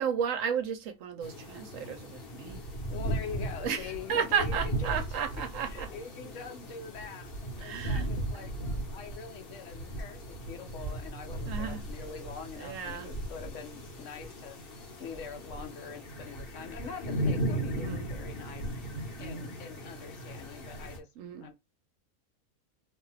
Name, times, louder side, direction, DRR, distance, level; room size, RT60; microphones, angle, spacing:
voice 1, 0.0-2.6 3.6-5.9 7.6-8.1 8.3-8.5 11.5-11.8 12.6-13.1 17.7-18.1 19.2-19.6 21.2-21.5, right 7 dB, 70° right, 0.9 m, -33 dB
sound 1, 1.2-21.0, right 1 dB, 45° left, 1.1 m, -37 dB
voice 2, 2.9-5.2 5.6-8.5 8.9-14.6 15.0-18.7 19.2-21.1 21.3-21.5, left 6 dB, 65° left, 0.9 m, -44 dB
2.7 x 2.3 x 3.1 m
omnidirectional pair, 1.5 m